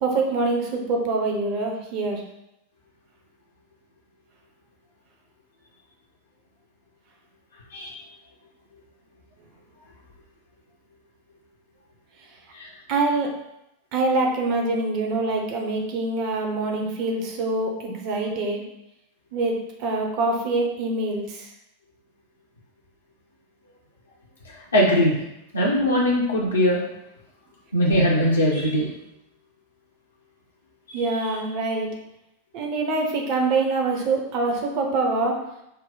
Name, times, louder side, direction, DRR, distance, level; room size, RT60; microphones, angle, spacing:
voice 1, 0.0-2.2 12.9-13.3 13.9-18.6 19.3-21.5 30.9-31.9 32.5-35.4, right 3 dB, 40° right, 2 dB, 0.8 m, -25 dB
voice 2, 24.4-25.1 25.5-26.8 27.7-28.9 30.9-31.3, equal, 75° left, -5 dB, 0.8 m, -21 dB
5.4 x 2.2 x 4.0 m, 0.85 s
figure-of-eight pair, 90°, 0 cm